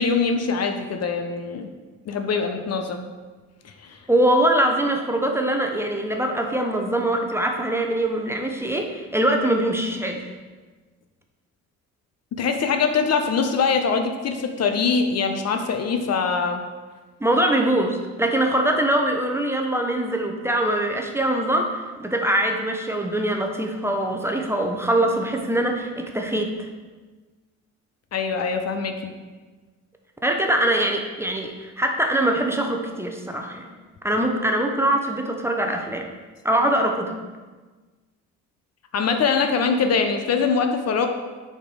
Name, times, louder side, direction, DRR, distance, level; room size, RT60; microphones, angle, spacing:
voice 1, 0.0-1.7 2.1-3.0 3.6-4.0 12.3-16.6 28.1-29.1 38.9-41.1, left 5 dB, 55° left, 6 dB, 0.8 m, -23 dB
voice 2, 4.1-10.3 17.2-26.7 30.2-33.7 34.0-36.1 36.4-37.2, right 1 dB, 10° right, 3 dB, 0.8 m, -23 dB
6.4 x 4.4 x 4.9 m, 1.3 s
cardioid pair, 90°, 30 cm